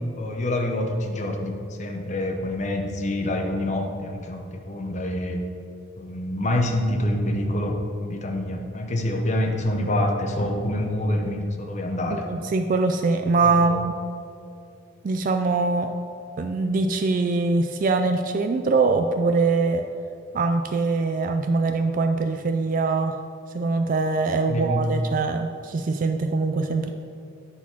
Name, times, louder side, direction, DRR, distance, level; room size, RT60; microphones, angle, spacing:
voice 1, 0.2-5.4 6.0-12.3 13.4-13.8 24.5-24.9, left 1 dB, 35° left, 3 dB, 0.7 m, -26 dB
voice 2, 12.1-13.9 15.0-15.9 16.4-19.8 20.3-23.2 23.5-26.9, right 3 dB, 40° right, 6 dB, 0.3 m, -23 dB
9.6 x 4.1 x 5.8 m, 2.4 s
head